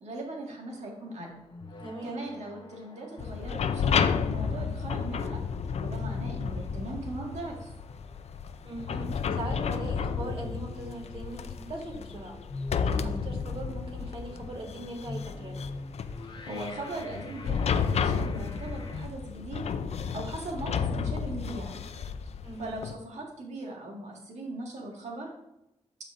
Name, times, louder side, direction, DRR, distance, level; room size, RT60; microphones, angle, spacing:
voice 1, 0.0-1.3 2.0-5.4 5.8-7.7 12.9-13.2 16.4-19.6 19.9-21.8 22.6-25.3, right 2 dB, 80° right, -1 dB, 1.8 m, -39 dB
sound 1, 0.7-19.1, left 2 dB, 45° left, 0.8 m, -45 dB
voice 2, 1.8-2.2 8.6-12.4 12.9-15.7 22.4-22.8, right 2 dB, 50° right, 1 dB, 2.0 m, -40 dB
sound 2, 3.2-22.9, left 6 dB, 70° left, 0.4 m, -32 dB
13.0 x 4.3 x 2.5 m, 0.87 s
cardioid pair, 85°, 12 cm